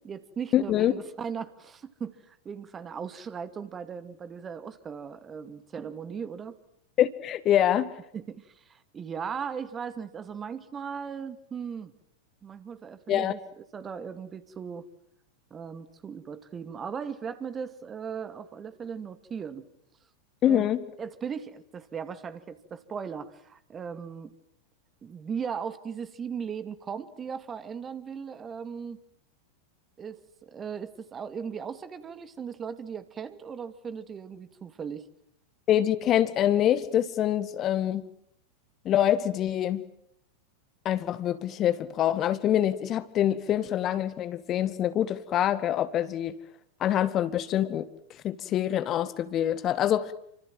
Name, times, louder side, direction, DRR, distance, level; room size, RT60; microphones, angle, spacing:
voice 1, 0.0-6.6 8.1-11.9 12.4-13.4 13.7-14.9 15.5-19.7 20.4-20.7 21.0-24.3 25.0-29.0 30.0-35.1, right 6 dB, 20° right, 2.3 m, -38 dB
voice 2, 0.5-0.9 7.0-7.9 13.1-13.3 20.4-20.8 35.7-38.0 38.9-39.8 40.9-46.4 46.8-47.9 48.2-50.1, left 11 dB, 30° left, 1.9 m, -25 dB
30.0 x 26.0 x 7.7 m
figure-of-eight pair, 90°, 0 cm